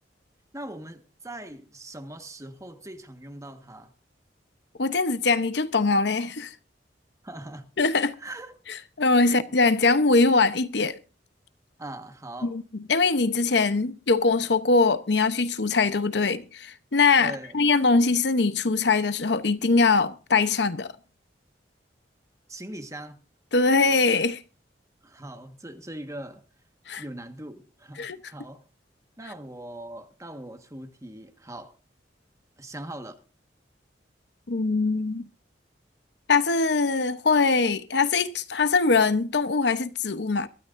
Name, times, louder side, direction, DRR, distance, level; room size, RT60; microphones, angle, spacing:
voice 1, 0.5-3.9 7.2-7.7 8.2-8.5 9.2-9.6 11.8-12.6 17.2-17.6 22.5-23.2 25.0-26.4 27.0-28.6 29.2-31.8 32.6-33.2, right 1 dB, 15° right, 1.4 m, -41 dB
voice 2, 4.8-6.5 7.8-8.1 9.0-11.0 12.4-12.6 12.9-20.9 23.5-24.4 26.9-27.0 28.0-28.2 34.5-35.3 36.3-40.5, left 4 dB, 65° left, 0.9 m, -22 dB
23.0 x 13.0 x 2.6 m
head